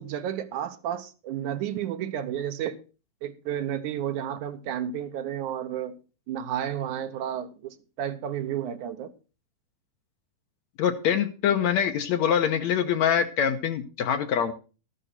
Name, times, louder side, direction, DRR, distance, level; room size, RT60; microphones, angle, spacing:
voice 1, 0.0-2.8 3.2-6.0 6.3-9.1, right 10 dB, 70° right, 2.3 m, -32 dB
voice 2, 10.8-14.5, left 8 dB, 70° left, 2.0 m, -24 dB
13.5 x 11.0 x 4.1 m
omnidirectional pair, 3.8 m